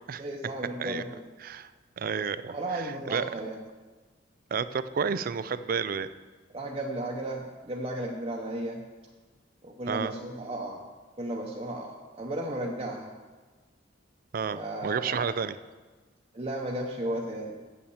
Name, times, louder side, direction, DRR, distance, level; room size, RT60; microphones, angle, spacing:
voice 1, 0.2-1.2 2.5-3.6 6.5-8.8 9.6-10.8 11.2-13.1 14.5-15.3 16.3-17.6, right 1 dB, 30° right, -2 dB, 0.8 m, -34 dB
voice 2, 2.0-3.3 4.5-6.1 9.9-10.2 14.3-15.6, right 6 dB, 50° right, 14 dB, 0.4 m, -31 dB
8.6 x 7.2 x 7.1 m, 1.3 s
head